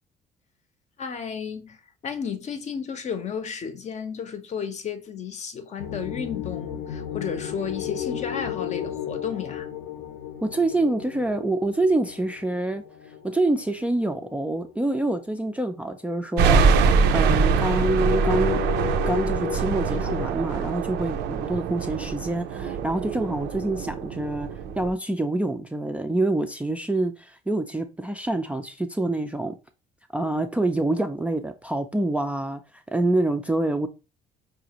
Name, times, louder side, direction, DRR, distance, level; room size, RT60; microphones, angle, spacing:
voice 1, 1.0-9.7, left 7 dB, 45° left, 0.6 m, -33 dB
sound 1, 5.8-15.5 16.0-16.1 16.7-20.3, left 8 dB, 80° left, 0.7 m, -34 dB
voice 2, 10.4-12.8 13.2-16.6 17.1-18.6 19.1-24.5 24.8-29.6 30.1-32.6 32.9-33.9, right 2 dB, 10° right, 0.3 m, -26 dB
sound 2, 16.4-24.9, right 5 dB, 80° right, 0.5 m, -24 dB
4.8 x 2.5 x 2.9 m
cardioid pair, 110°, 17 cm